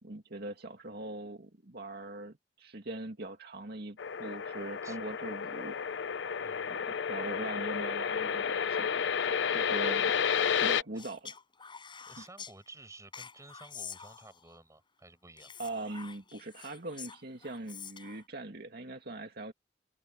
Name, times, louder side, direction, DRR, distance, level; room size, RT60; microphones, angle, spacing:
voice 1, 0.0-5.8 6.7-9.2 9.5-10.1 10.4-11.4 12.0-12.1 15.6-19.5, right 2 dB, 60° right, 2.2 m, -41 dB
sound 1, 4.0-10.8, left 7 dB, 85° left, 0.6 m, -31 dB
voice 2, 6.4-6.8 9.3-9.5 12.1-15.5, right 2 dB, 20° right, 6.1 m, -53 dB
Speech, 11.0-12.5 13.1-14.6 15.4-18.2, left 7 dB, 30° left, 5.7 m, -47 dB
head